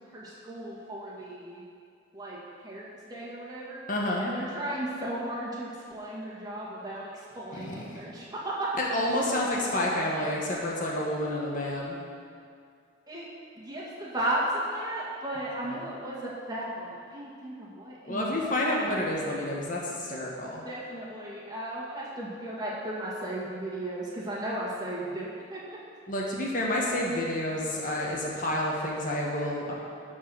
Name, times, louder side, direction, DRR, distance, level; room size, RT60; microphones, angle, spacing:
voice 1, 0.1-1.6 2.1-2.4 2.6-3.8 4.2-8.7 13.1-13.2 13.6-18.9 20.7-25.8, right 1 dB, 20° right, -6 dB, 1.9 m, -35 dB
voice 2, 3.9-4.2 7.5-8.0 8.8-12.0 18.1-20.6 26.1-29.7, left 1 dB, 45° left, -3 dB, 1.5 m, -29 dB
13.0 x 4.7 x 6.4 m, 2.3 s
head